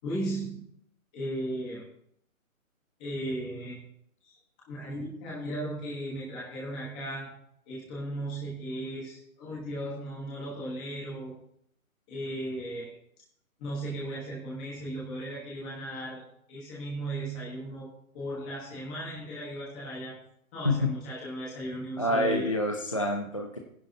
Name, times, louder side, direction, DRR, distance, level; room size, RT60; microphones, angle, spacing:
voice 1, 0.0-0.6 1.1-1.9 3.0-3.8 4.2-4.4 4.7-7.4 7.7-11.3 12.1-12.9 13.6-16.2 16.5-17.9 18.1-20.2 20.5-22.5, right 1 dB, 5° left, -6 dB, 1.2 m, -36 dB
voice 2, 22.0-23.6, left 1 dB, 25° left, 1 dB, 0.6 m, -27 dB
16.0 x 10.5 x 2.8 m, 0.69 s
hypercardioid pair, 180°, 43 cm